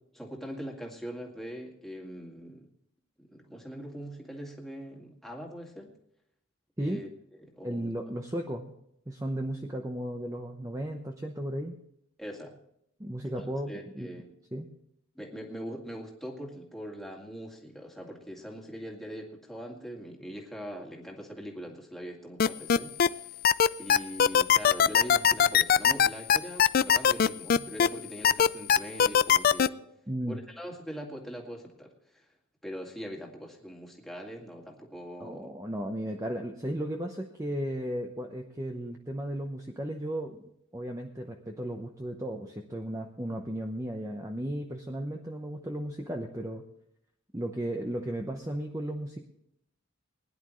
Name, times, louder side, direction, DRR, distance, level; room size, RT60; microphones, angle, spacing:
voice 1, 0.1-2.7 3.2-5.9 6.8-7.1 7.5-7.9 12.2-12.6 13.4-14.3 15.2-23.4 23.8-29.8 30.3-31.9 32.6-35.5, equal, ahead, 0 dB, 2.1 m, -42 dB
voice 2, 7.6-8.7 9.1-11.8 13.0-14.1 14.5-14.7 30.1-30.4 35.2-46.6 47.3-49.2, right 1 dB, 15° right, 3 dB, 0.8 m, -35 dB
sound 1, 22.4-23.1 23.4-27.9 28.2-29.7, left 8 dB, 45° left, 0.4 m, -20 dB
21.0 x 10.5 x 3.2 m, 0.75 s
head